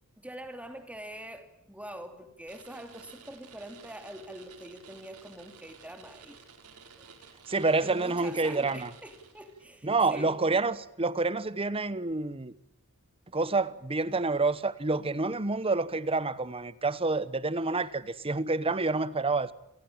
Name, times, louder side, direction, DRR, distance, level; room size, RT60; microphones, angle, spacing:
voice 1, 0.2-6.4 7.0-7.2 7.8-10.4, right 1 dB, 5° right, 2.8 m, -44 dB
sound 1, 2.5-9.7, right 5 dB, 85° right, 4.1 m, -53 dB
voice 2, 7.5-8.9 9.8-12.5 13.3-19.5, right 3 dB, 25° right, 1.0 m, -28 dB
28.5 x 17.0 x 8.9 m
head